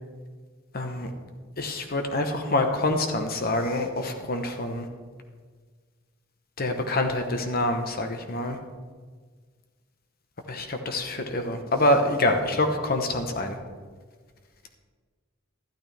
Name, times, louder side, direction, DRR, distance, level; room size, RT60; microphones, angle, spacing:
voice 1, 0.7-1.1 1.6-4.9 6.6-8.6 10.5-13.6, left 1 dB, 45° left, 5 dB, 1.0 m, -26 dB
13.0 x 12.0 x 3.4 m, 1.5 s
head